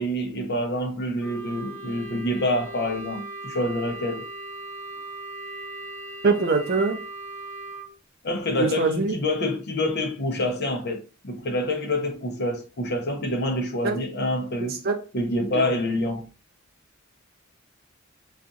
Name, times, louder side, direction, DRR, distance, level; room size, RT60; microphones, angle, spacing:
voice 1, 0.0-4.3 8.2-14.8 15.1-16.3, left 1 dB, 50° left, 0.6 m, -27 dB
Wind instrument woodwind instrument, 1.2-7.9, right 2 dB, 10° left, 0.3 m, -38 dB
voice 2, 6.2-7.0 8.6-9.2 13.8-14.0 14.6-15.0 15.5-15.7, right 4 dB, 50° right, 0.5 m, -23 dB
2.5 x 2.3 x 3.9 m
head